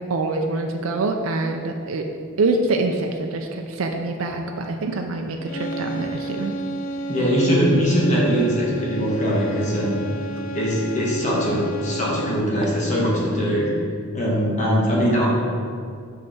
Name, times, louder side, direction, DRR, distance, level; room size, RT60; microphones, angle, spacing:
voice 1, 0.1-2.0 2.4-6.5, right 3 dB, 80° right, 3 dB, 0.5 m, -25 dB
sound 1, 5.4-12.6, right 2 dB, 80° left, 0.4 m, -32 dB
voice 2, 7.1-10.0 10.5-13.7 14.1-15.4, equal, 35° left, -5 dB, 1.3 m, -21 dB
6.4 x 5.8 x 4.2 m, 2.2 s
head